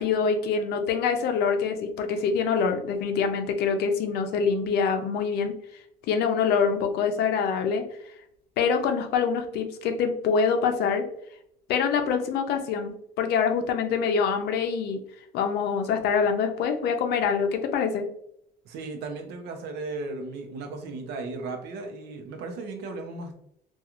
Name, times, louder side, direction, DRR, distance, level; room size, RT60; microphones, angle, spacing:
voice 1, 0.0-5.5 6.1-7.8 8.6-11.1 11.7-15.0 15.3-18.1, left 6 dB, 75° left, 6 dB, 0.5 m, -25 dB
voice 2, 18.6-23.3, right 3 dB, 80° right, 5 dB, 0.6 m, -36 dB
2.9 x 2.3 x 2.4 m, 0.72 s
cardioid pair, 110°, 17 cm